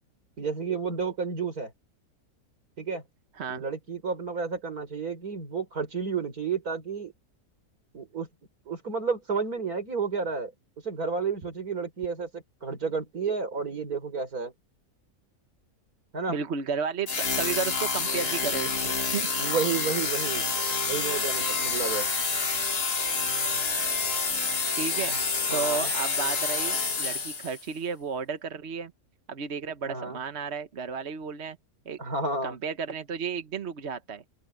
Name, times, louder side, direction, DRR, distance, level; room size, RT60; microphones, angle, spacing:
voice 1, 0.4-1.7 2.8-3.0 3.5-7.1 7.9-8.3 8.7-10.5 10.8-14.5 16.1-16.4 19.4-20.4 20.9-22.1 25.1-25.2 25.5-25.9 29.9-30.2 32.0-32.6, right 5 dB, 70° right, 4.8 m, -31 dB
voice 2, 16.3-19.3 24.8-28.9 29.3-31.6 31.9-32.0 32.4-34.2, right 6 dB, 50° right, 1.2 m, -33 dB
sound 1, 17.1-27.6, left 4 dB, 85° left, 3.3 m, -28 dB
open air
omnidirectional pair, 1.6 m